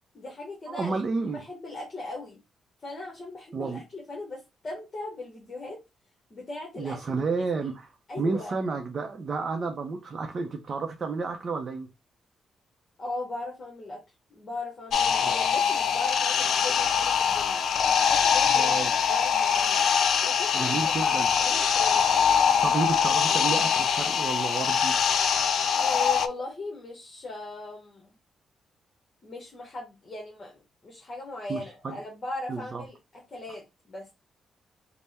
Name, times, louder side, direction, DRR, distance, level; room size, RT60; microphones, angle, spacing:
voice 1, 0.1-1.0 1.3-2.4 2.8-5.8 6.3-7.7 8.1-8.6 13.0-14.0 14.3-17.6 18.0-19.8 20.2-22.1 25.7-28.2 29.2-33.0 33.3-34.1, left 2 dB, 40° left, 1.0 m, -38 dB
voice 2, 0.7-1.4 3.5-3.8 6.8-7.9 8.2-11.9 15.2-15.4 18.5-18.9 20.5-21.3 22.6-24.9 31.5-32.0 32.5-32.8, right 4 dB, 45° right, 0.5 m, -31 dB
sound 1, 14.9-26.3, left 7 dB, 70° left, 0.3 m, -23 dB
3.4 x 2.1 x 4.1 m
cardioid pair, 100°, 0 cm